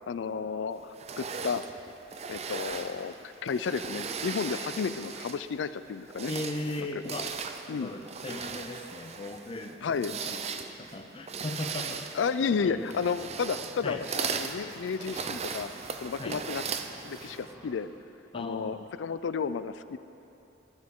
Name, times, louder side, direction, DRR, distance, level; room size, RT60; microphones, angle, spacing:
voice 1, 0.1-1.6 2.3-3.1 3.4-6.3 6.8-6.9 7.7-7.9 9.8-10.1 12.2-15.7 16.0-16.6 17.0-17.9 18.3-20.0, left 5 dB, 80° left, 13 dB, 0.4 m, -32 dB
sound 1, 0.9-5.5 6.0-17.5, right 6 dB, 35° right, 0.4 m, -38 dB
voice 2, 6.3-7.3 7.7-10.4 10.8-12.2 12.6-13.0 13.8-14.0 16.2-16.4 18.3-18.9, left 2 dB, 30° left, 4 dB, 0.6 m, -37 dB
sound 2, 12.6-17.9, equal, 10° right, 1.0 m, -51 dB
12.5 x 11.5 x 3.7 m, 2.9 s
head